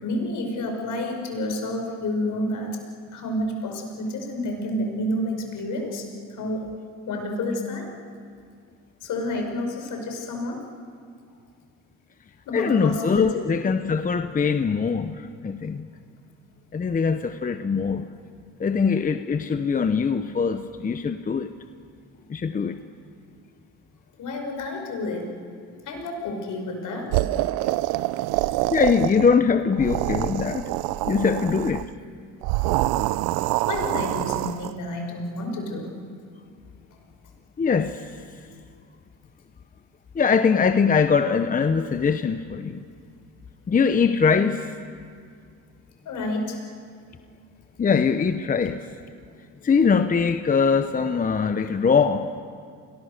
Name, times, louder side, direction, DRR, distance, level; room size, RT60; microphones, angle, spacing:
voice 1, 0.0-2.8 3.1-6.7 7.1-7.9 9.0-10.6 12.5-13.4 24.2-25.3 25.8-27.1 33.3-35.9 46.1-46.6, left 1 dB, 55° left, 3 dB, 5.6 m, -29 dB
voice 2, 12.5-15.9 16.7-18.1 18.6-21.5 22.3-22.8 28.7-30.7 31.1-31.8 37.6-38.2 40.1-42.8 43.7-44.7 47.8-48.8 49.6-52.4, left 5 dB, 25° left, 9 dB, 0.8 m, -22 dB
sound 1, 27.1-29.4 29.7-31.9 32.4-34.7, right 17 dB, 80° right, 0.6 m, -26 dB
29.5 x 22.0 x 6.7 m, 2.2 s
cardioid pair, 100°, 36 cm